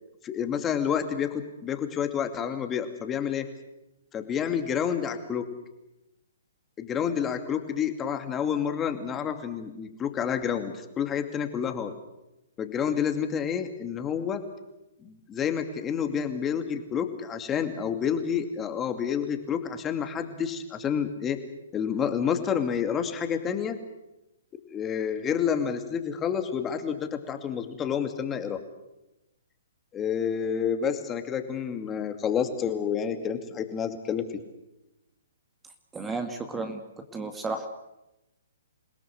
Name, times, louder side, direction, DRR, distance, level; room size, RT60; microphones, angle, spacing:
voice 1, 0.2-3.5 4.1-5.4 6.8-11.9 12.6-14.4 15.0-21.4 21.7-23.8 24.7-28.6 29.9-34.2, left 8 dB, 20° left, 7 dB, 2.5 m, -29 dB
voice 2, 35.9-36.8 37.1-37.7, right 3 dB, 10° right, 6 dB, 2.0 m, -32 dB
28.0 x 17.5 x 8.0 m, 0.92 s
hypercardioid pair, 135°, 0 cm